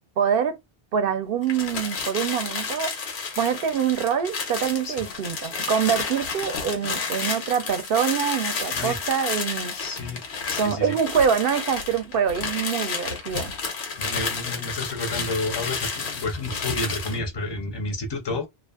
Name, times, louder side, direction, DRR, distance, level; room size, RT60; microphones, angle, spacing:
voice 1, 0.2-0.6 0.9-2.9 3.4-9.7 10.6-13.5, right 7 dB, 65° right, 0.7 m, -25 dB
sound 1, 1.4-17.2, left 5 dB, 85° left, 1.0 m, -31 dB
voice 2, 9.7-10.2 10.5-11.0 14.0-18.5, left 2 dB, 30° left, 0.5 m, -30 dB
2.4 x 2.4 x 2.3 m
omnidirectional pair, 1.1 m